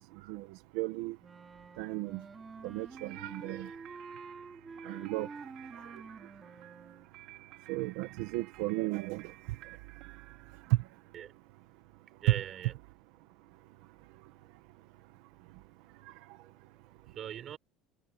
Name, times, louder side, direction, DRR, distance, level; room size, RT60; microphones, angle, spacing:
voice 1, 0.2-1.2 1.8-2.2 2.6-3.7 4.8-5.3 5.8-5.9 7.7-9.3 10.7-10.8 16.1-16.2, right 19 dB, 75° right, 1.4 m, -34 dB
Wind instrument woodwind instrument, 1.2-7.1, right 4 dB, 15° right, 3.5 m, -48 dB
sound 1, 2.9-11.3, right 16 dB, 50° right, 5.4 m, -55 dB
voice 2, 11.1-11.5 12.1-12.8 14.4-14.5 15.7-17.6, right 10 dB, 30° right, 4.5 m, -45 dB
cardioid pair, 175°, 0 cm